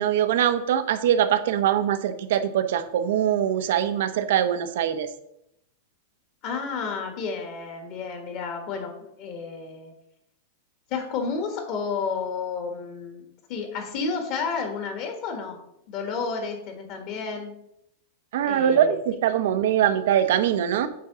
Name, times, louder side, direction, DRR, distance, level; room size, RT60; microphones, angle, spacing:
voice 1, 0.0-5.1 18.3-20.9, right 10 dB, 70° right, 11 dB, 0.8 m, -22 dB
voice 2, 6.4-9.9 10.9-15.6 15.9-17.5 18.4-19.0, left 5 dB, 40° left, 4 dB, 1.5 m, -31 dB
8.4 x 3.7 x 6.1 m, 0.78 s
supercardioid pair, 160°, 0 cm